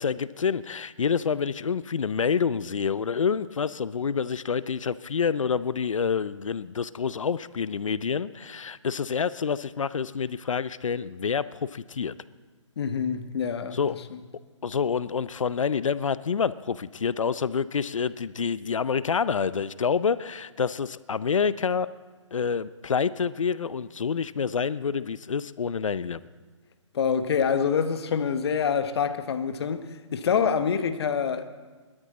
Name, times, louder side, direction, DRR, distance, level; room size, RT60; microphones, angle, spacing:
voice 1, 0.0-12.1 13.7-14.0 14.6-21.9 22.3-26.2, left 6 dB, 80° left, 0.6 m, -27 dB
voice 2, 12.8-13.8 14.1-14.2 26.9-31.6, left 6 dB, 55° left, 1.1 m, -26 dB
20.5 x 12.5 x 4.1 m
hypercardioid pair, 145°, 16 cm